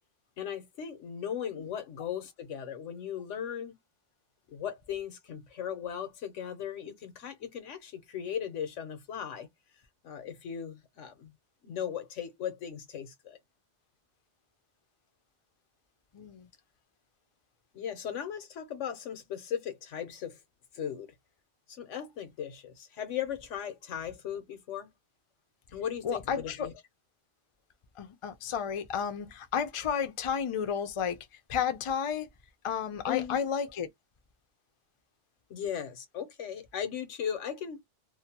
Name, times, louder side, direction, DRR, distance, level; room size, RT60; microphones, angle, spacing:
voice 1, 0.4-3.8 4.5-9.5 10.0-11.3 11.6-13.4 17.7-20.4 20.7-21.1 21.7-24.9 25.7-26.7 33.1-33.4 35.5-37.8, left 9 dB, 90° left, 1.2 m, -37 dB
voice 2, 16.1-16.5 26.0-26.7 28.0-32.3 32.6-33.9, left 7 dB, 55° left, 0.3 m, -32 dB
2.7 x 2.1 x 2.7 m
omnidirectional pair, 1.2 m